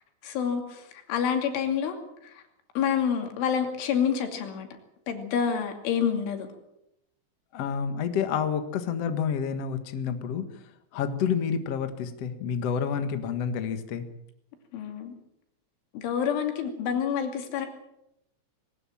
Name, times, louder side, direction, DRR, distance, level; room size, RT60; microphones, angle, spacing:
voice 1, 0.2-2.0 2.2-2.4 2.8-4.7 5.1-6.5 14.7-15.1 15.9-17.7, left 7 dB, 90° left, 5 dB, 5.1 m, -28 dB
voice 2, 7.5-10.4 10.9-14.0, left 7 dB, 60° left, 8 dB, 1.7 m, -29 dB
21.0 x 19.0 x 7.4 m, 0.82 s
omnidirectional pair, 5.4 m